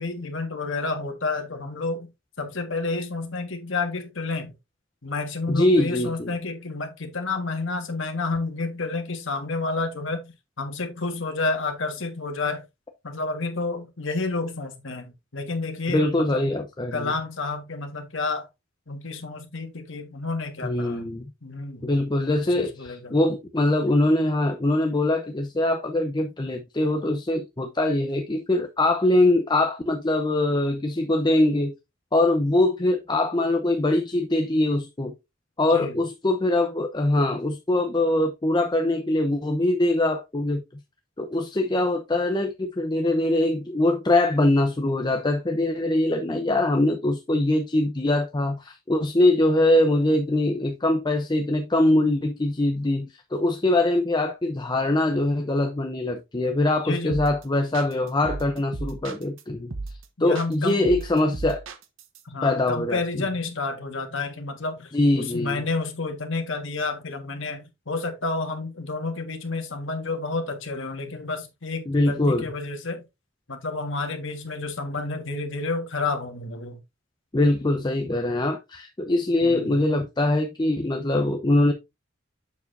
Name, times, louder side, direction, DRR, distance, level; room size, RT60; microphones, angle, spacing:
voice 1, 0.0-2.1 2.4-4.5 5.0-12.6 13.0-16.4 16.9-18.5 18.9-21.0 21.4-21.9 22.5-23.1 35.7-35.9 56.8-57.2 60.2-60.9 62.2-73.0 73.5-76.8 79.4-79.8, left 3 dB, 65° left, 1.6 m, -30 dB
voice 2, 5.5-6.3 15.9-17.1 20.6-21.3 21.8-31.7 32.1-35.1 35.6-40.6 41.2-59.7 60.2-61.6 62.4-63.2 64.9-65.6 71.9-72.5 77.3-81.7, left 1 dB, 20° left, 0.7 m, -23 dB
sound 1, 57.1-57.4 57.7-59.4 59.7-60.0 60.3-62.2, right 3 dB, 70° right, 1.0 m, -35 dB
7.1 x 6.7 x 2.6 m
head